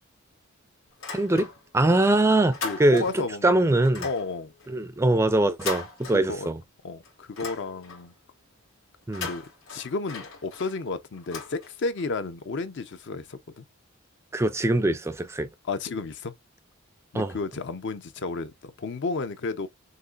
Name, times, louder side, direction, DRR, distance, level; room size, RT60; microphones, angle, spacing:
sound 1, 0.9-1.9 2.2-3.3 3.8-6.7 7.0-8.2 9.0-12.1, left 4 dB, 80° left, 2.4 m, -39 dB
voice 1, 1.1-1.5 1.7-4.1 4.7-6.6 9.1-9.3 14.3-15.5 17.1-17.3, right 1 dB, 15° right, 0.3 m, -22 dB
voice 2, 2.6-4.5 6.1-6.5 6.8-8.1 9.2-13.6 15.6-16.3 17.1-19.7, left 3 dB, 60° left, 0.6 m, -32 dB
6.5 x 2.5 x 2.4 m
head